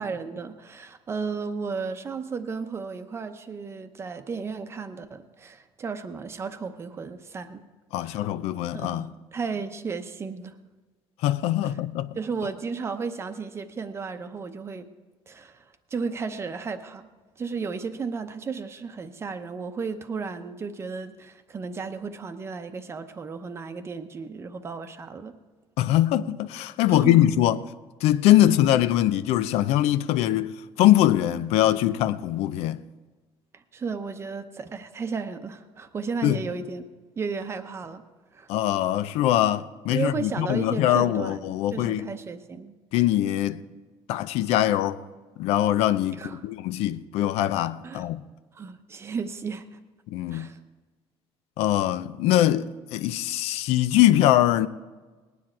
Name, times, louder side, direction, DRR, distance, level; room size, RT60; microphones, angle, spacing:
voice 1, 0.0-7.6 8.0-8.3 8.7-10.5 11.6-11.8 12.2-14.9 15.3-17.1 17.4-25.4 26.9-27.3 33.5-36.8 37.2-38.0 38.3-38.5 39.9-41.4 41.7-42.7 46.1-46.4 47.8-48.0 48.5-49.8 50.3-50.6, right 5 dB, 25° right, 0.7 m, -34 dB
voice 2, 7.9-9.1 11.2-12.1 25.8-27.6 28.0-30.5 30.8-32.8 36.2-36.4 38.5-42.0 42.9-43.6 44.1-45.0 45.4-48.2 50.1-50.5 51.6-54.7, left 13 dB, 85° left, 0.5 m, -22 dB
19.5 x 9.8 x 4.5 m
cardioid pair, 155°, 10 cm